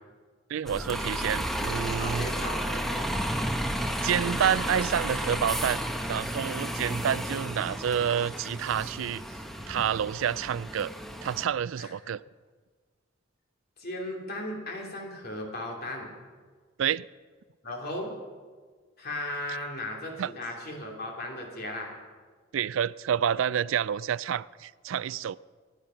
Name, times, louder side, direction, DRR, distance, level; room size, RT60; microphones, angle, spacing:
voice 1, 0.5-2.3 4.0-5.8 6.1-9.2 9.7-10.9 11.2-12.2 16.8-17.1 20.2-20.3 22.5-25.4, right 8 dB, 80° right, 20 dB, 0.4 m, -28 dB
Bus, 0.7-11.4, equal, ahead, 1.0 m, -32 dB
voice 2, 2.0-3.1 11.8-11.9 13.8-16.1 17.6-18.1 19.0-21.9, left 1 dB, 50° left, 0 dB, 3.0 m, -36 dB
17.0 x 10.5 x 5.7 m, 1.5 s
head